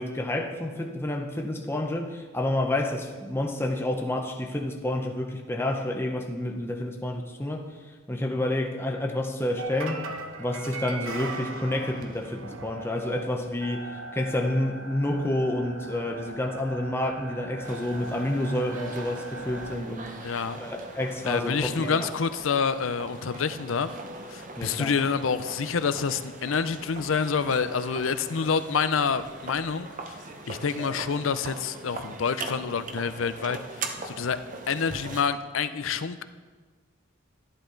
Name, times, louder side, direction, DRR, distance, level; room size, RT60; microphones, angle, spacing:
voice 1, 0.0-7.7 8.1-10.1 10.4-20.2 20.6-22.1 24.6-24.9, left 1 dB, 10° left, 2 dB, 0.7 m, -29 dB
sound 1, 9.6-19.8, right 2 dB, 85° right, 1.0 m, -40 dB
sound 2, 17.6-35.2, right 3 dB, 40° right, 0.8 m, -41 dB
voice 2, 20.1-20.6 21.3-23.9 24.3-30.2 30.5-33.6 34.1-34.4 34.7-36.2, left 6 dB, 75° left, 12 dB, 0.5 m, -27 dB
12.0 x 11.0 x 3.9 m, 1.4 s
head